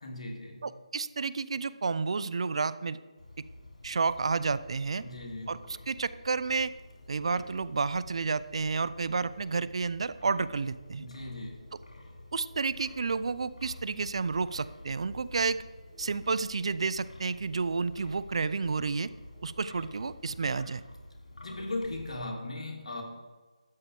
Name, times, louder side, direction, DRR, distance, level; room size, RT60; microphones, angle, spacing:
voice 1, 0.0-0.7 5.0-5.6 11.0-11.7 21.4-23.0, left 2 dB, 65° left, 0 dB, 3.0 m, -38 dB
voice 2, 0.6-3.0 3.8-5.0 5.5-5.6 5.9-6.7 7.1-11.0 12.3-15.6 16.0-19.1 19.4-20.8, right 4 dB, 55° right, 16 dB, 0.5 m, -30 dB
sound 1, 1.6-21.0, right 3 dB, 25° right, 4.4 m, -63 dB
Wind, 3.2-22.2, left 1 dB, 80° left, 3.5 m, -50 dB
13.0 x 8.7 x 4.8 m, 1.3 s
figure-of-eight pair, 160°, 4 cm